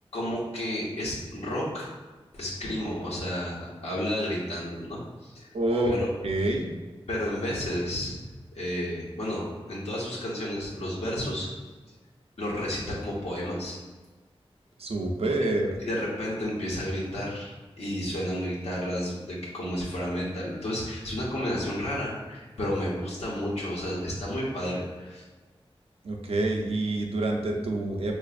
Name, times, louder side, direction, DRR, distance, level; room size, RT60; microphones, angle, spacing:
voice 1, 0.1-1.9 2.3-5.5 5.8-6.1 7.1-8.1 8.5-11.5 12.4-13.8 15.8-25.2, equal, 90° left, -6 dB, 1.0 m, -31 dB
voice 2, 5.5-5.9 6.2-6.6 14.8-15.8 26.0-28.1, right 2 dB, 75° right, 1 dB, 0.5 m, -27 dB
4.6 x 2.4 x 2.4 m, 1.3 s
wide cardioid pair, 95°, 10 cm